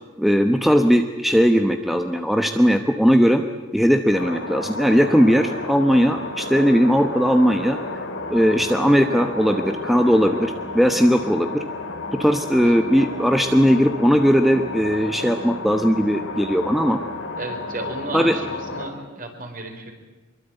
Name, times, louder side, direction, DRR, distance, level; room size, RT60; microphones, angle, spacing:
voice 1, 0.2-3.4 3.7-7.8 8.3-11.6 12.1-17.0 18.1-18.4, equal, ahead, 6 dB, 1.0 m, -18 dB
sound 1, 4.1-18.9, left 2 dB, 75° left, 3.4 m, -32 dB
voice 2, 17.3-19.9, right 2 dB, 45° right, 5 dB, 4.4 m, -33 dB
25.0 x 23.0 x 9.1 m, 1.2 s
head